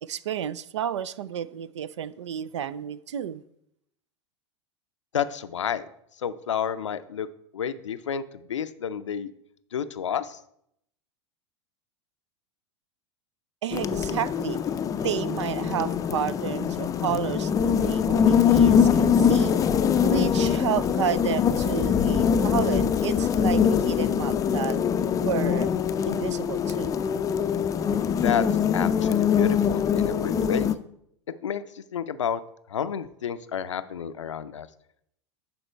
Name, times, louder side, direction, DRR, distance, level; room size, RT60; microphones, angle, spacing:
voice 1, 0.0-3.4 13.6-14.6 15.0-19.7 20.0-24.8 25.2-25.7 26.0-27.0, right 9 dB, 75° right, 0.5 m, -31 dB
voice 2, 5.1-5.9 6.2-7.3 7.5-9.3 9.7-10.4 28.2-28.4 28.7-30.7 31.3-32.4 32.7-34.7, left 8 dB, 80° left, 0.5 m, -30 dB
sound 1, 13.7-30.7, left 7 dB, 25° left, 0.4 m, -23 dB
11.5 x 4.2 x 4.4 m
hypercardioid pair, 90°, 15 cm